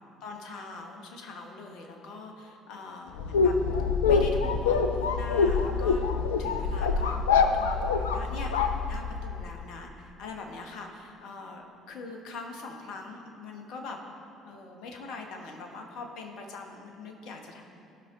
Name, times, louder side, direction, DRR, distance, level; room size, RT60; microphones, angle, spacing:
voice 1, 0.2-3.6 4.1-6.0 6.4-14.0 14.4-17.6, left 3 dB, 55° left, 2 dB, 1.2 m, -42 dB
sound 1, 3.2-9.4, left 5 dB, 75° left, 0.5 m, -25 dB
15.5 x 5.8 x 3.7 m, 2.6 s
figure-of-eight pair, 55°, 0 cm